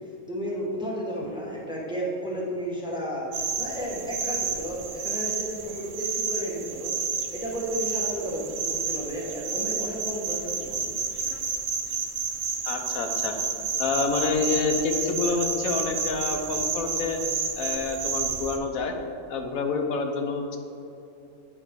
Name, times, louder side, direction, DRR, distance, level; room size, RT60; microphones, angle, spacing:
voice 1, 0.3-6.9 7.3-11.0, equal, 5° right, -5 dB, 1.1 m, -33 dB
sound 1, 3.3-18.6, right 5 dB, 70° right, 1.1 m, -30 dB
voice 2, 12.6-13.3 13.8-17.2 17.6-19.0 19.3-20.6, left 4 dB, 90° left, 4 dB, 1.1 m, -27 dB
8.7 x 5.2 x 3.5 m, 2.8 s
omnidirectional pair, 1.4 m